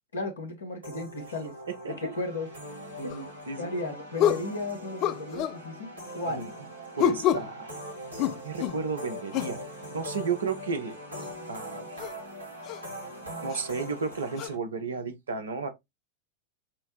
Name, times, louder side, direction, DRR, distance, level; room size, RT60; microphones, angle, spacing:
voice 1, 0.1-1.5 1.9-2.5 3.0-3.3 3.6-6.5, left 2 dB, 70° left, 1.2 m, -35 dB
sound 1, 0.8-14.5, equal, 90° left, 1.5 m, -42 dB
voice 2, 1.7-2.1 3.5-3.9 6.3-6.5 6.9-7.7 8.4-9.6 9.9-11.0 11.5-12.0 13.4-15.7, right 5 dB, 70° right, 0.8 m, -33 dB
sound 2, 3.1-3.3 4.2-4.5 5.0-5.6 7.0-7.5 8.2-8.8 9.3-9.6 11.2-11.3 12.0-12.1 12.6-12.8 13.5-13.7 14.4-14.5, left 12 dB, 40° left, 0.3 m, -27 dB
6.1 x 2.1 x 3.0 m
figure-of-eight pair, 90°, 0 cm